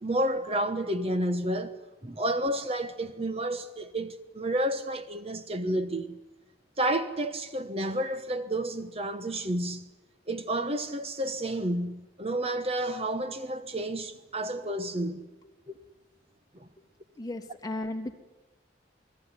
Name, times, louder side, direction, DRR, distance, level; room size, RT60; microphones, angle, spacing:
voice 1, 0.0-1.8 2.0-6.2 6.8-9.9 10.3-15.3 15.7-15.8 16.6-16.7, right 1 dB, 30° right, 1.2 m, -30 dB
voice 2, 17.1-18.2, left 1 dB, 20° left, 2.8 m, -35 dB
29.0 x 20.5 x 9.9 m
head